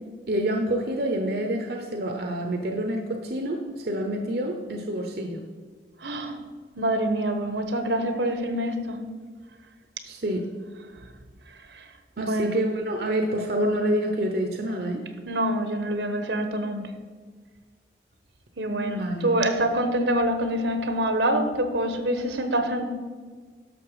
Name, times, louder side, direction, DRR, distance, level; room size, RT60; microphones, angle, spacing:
voice 1, 0.3-5.4 10.0-10.4 12.2-15.0 18.9-19.3, right 1 dB, 60° right, 4 dB, 0.8 m, -27 dB
voice 2, 6.0-6.4 6.7-9.0 11.5-12.6 15.3-16.9 18.6-22.9, right 1 dB, 80° right, 7 dB, 1.2 m, -26 dB
11.0 x 6.7 x 4.9 m, 1.5 s
head